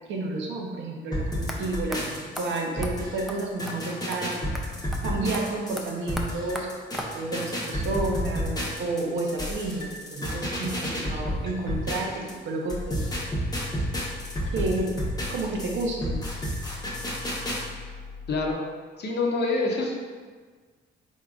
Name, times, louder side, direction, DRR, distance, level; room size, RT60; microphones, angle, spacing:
voice 1, 0.1-4.5 5.0-6.7 6.9-13.1 14.5-15.0 15.3-16.2, right 2 dB, 70° right, 0 dB, 0.7 m, -31 dB
sound 1, 1.1-12.3 12.7-17.6, equal, 20° left, 0.9 m, -31 dB
sound 2, 1.5-1.6 1.9-2.0 2.4-2.5 2.8-2.9 3.3-3.4 3.7-3.8 4.1-4.2 4.5-4.6 4.9-5.0 5.3-7.4, equal, ahead, 0.4 m, -37 dB
sound 3, 12.9-18.5, left 5 dB, 90° left, 0.7 m, -41 dB
voice 2, 18.3-18.7 19.0-20.0, left 3 dB, 60° left, 0 dB, 0.7 m, -26 dB
4.0 x 3.6 x 2.3 m, 1.5 s
cardioid pair, 90°, 20 cm